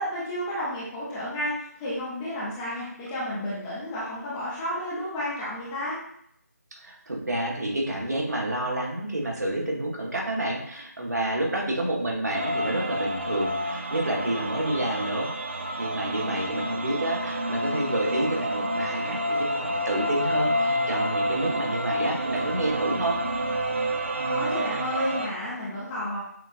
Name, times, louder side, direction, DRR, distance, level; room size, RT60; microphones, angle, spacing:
voice 1, 0.0-6.0 16.2-16.4 24.0-26.2, left 1 dB, 10° left, -8 dB, 0.6 m, -32 dB
voice 2, 6.8-15.3 15.8-23.2, right 1 dB, 70° right, -1 dB, 1.2 m, -29 dB
sound 1, 12.3-25.3, equal, 45° right, 0.4 m, -29 dB
6.5 x 2.5 x 2.5 m, 0.71 s
figure-of-eight pair, 160°, 9 cm